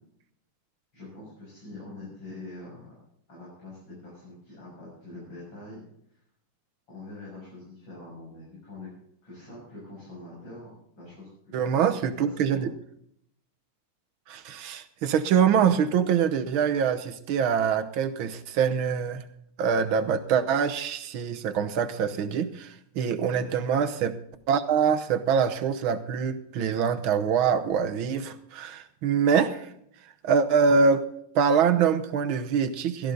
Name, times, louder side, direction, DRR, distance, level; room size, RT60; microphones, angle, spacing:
voice 1, 0.9-2.9 3.3-5.8 6.1-6.2 6.9-8.9 9.2-12.6 23.3-23.5, left 2 dB, 60° left, -7 dB, 7.9 m, -44 dB
voice 2, 11.5-12.7 14.3-19.2 19.6-24.2 24.5-29.7 30.2-31.1 31.4-33.1, right 6 dB, 70° right, 10 dB, 1.8 m, -24 dB
16.5 x 14.0 x 4.0 m, 0.70 s
omnidirectional pair, 2.4 m